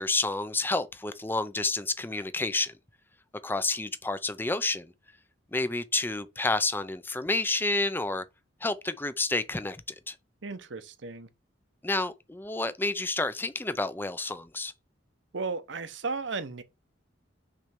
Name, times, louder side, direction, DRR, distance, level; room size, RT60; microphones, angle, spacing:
voice 1, 0.0-2.8 3.4-4.9 5.5-8.3 8.6-9.8 10.1-10.2 11.8-14.7, left 2 dB, 10° left, 0.5 m, -29 dB
voice 2, 10.4-11.3 15.3-16.6, right 4 dB, 65° right, 0.8 m, -34 dB
6.1 x 3.3 x 5.9 m
head